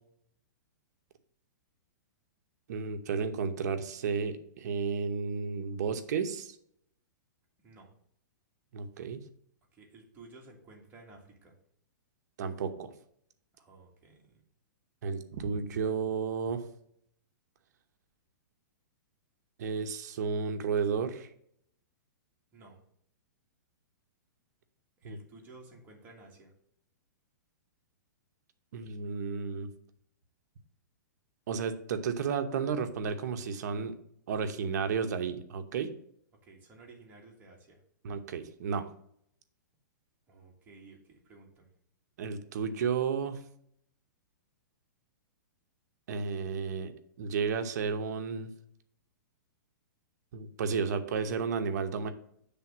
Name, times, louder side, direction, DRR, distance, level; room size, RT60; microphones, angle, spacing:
voice 1, 2.7-6.6 8.7-9.2 12.4-12.9 15.0-16.6 19.6-21.3 25.0-25.2 28.7-29.7 31.5-33.9 34.3-35.9 38.0-38.9 42.2-43.5 46.1-46.9 47.2-48.5 50.3-52.1, right 6 dB, 60° right, 8 dB, 0.9 m, -32 dB
voice 2, 9.7-11.5 13.6-14.4 22.5-22.8 25.0-26.5 36.4-37.8 40.3-41.7, right 3 dB, 15° right, -2 dB, 1.7 m, -54 dB
7.5 x 3.5 x 5.9 m, 0.69 s
hypercardioid pair, 155°, 10 cm